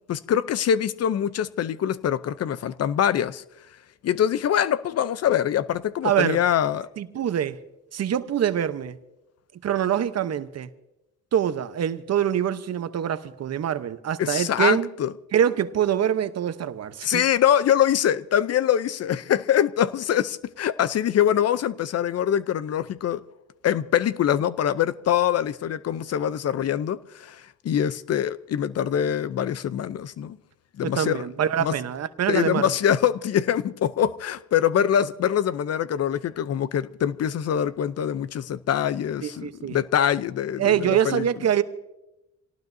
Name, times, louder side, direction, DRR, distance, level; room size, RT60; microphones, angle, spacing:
voice 1, 0.1-3.4 4.0-6.9 14.2-15.1 17.0-23.2 23.6-30.4 30.8-31.2 31.6-31.7 32.3-41.2, left 9 dB, 55° left, 0.7 m, -24 dB
voice 2, 6.0-6.4 7.0-7.6 7.9-9.0 9.6-10.7 11.3-14.9 15.3-17.2 30.8-32.7 39.2-39.8 40.6-41.6, right 9 dB, 55° right, 1.0 m, -24 dB
27.0 x 18.5 x 2.7 m
cardioid pair, 90°, 30 cm